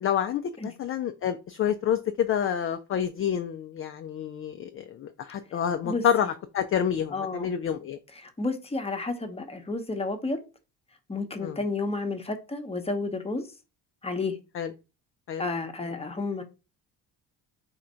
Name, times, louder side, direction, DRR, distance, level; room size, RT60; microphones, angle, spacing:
voice 1, 0.0-8.0 11.4-11.6 14.6-14.7 15.3-15.5, left 9 dB, 30° left, 0.4 m, -28 dB
voice 2, 5.8-6.3 7.1-7.5 8.1-10.4 11.1-13.5 14.0-14.4 15.4-16.4, left 3 dB, 10° left, 0.9 m, -31 dB
3.6 x 2.5 x 4.3 m
hypercardioid pair, 50°, 50 cm